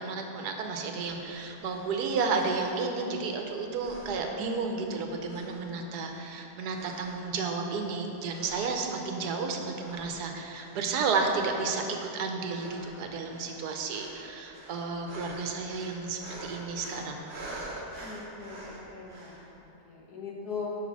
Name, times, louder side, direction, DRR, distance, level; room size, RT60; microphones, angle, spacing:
voice 1, 0.0-17.2, right 4 dB, 80° right, 3 dB, 1.3 m, -32 dB
sound 1, 1.0-3.5 3.8-4.9 5.2-7.3 7.6-8.0 8.3-9.5 9.8-19.5, right 1 dB, 35° right, 1.0 m, -47 dB
voice 2, 18.0-20.7, left 5 dB, 75° left, -3 dB, 1.7 m, -41 dB
6.0 x 5.5 x 5.9 m, 2.9 s
omnidirectional pair, 1.7 m